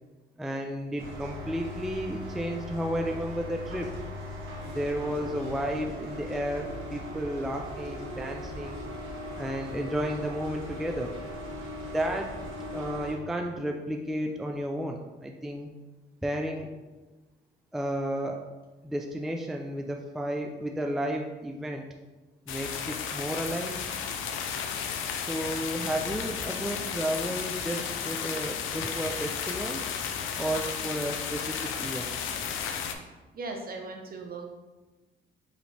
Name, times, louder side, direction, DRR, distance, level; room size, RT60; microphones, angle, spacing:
voice 1, 0.4-3.9 4.6-8.8 9.4-11.2 11.8-12.3 12.7-15.7 16.2-16.7 17.7-18.5 18.8-21.9 22.5-23.8 25.1-29.8 30.4-32.1, equal, ahead, 2 dB, 0.3 m, -32 dB
sound 1, 1.0-13.1, left 1 dB, 85° right, 1.3 m, -39 dB
sound 2, 22.5-32.9, left 7 dB, 85° left, 0.5 m, -33 dB
voice 2, 33.3-34.5, right 3 dB, 50° right, 2 dB, 0.9 m, -38 dB
5.0 x 3.0 x 3.2 m, 1.2 s
cardioid pair, 90°, 20 cm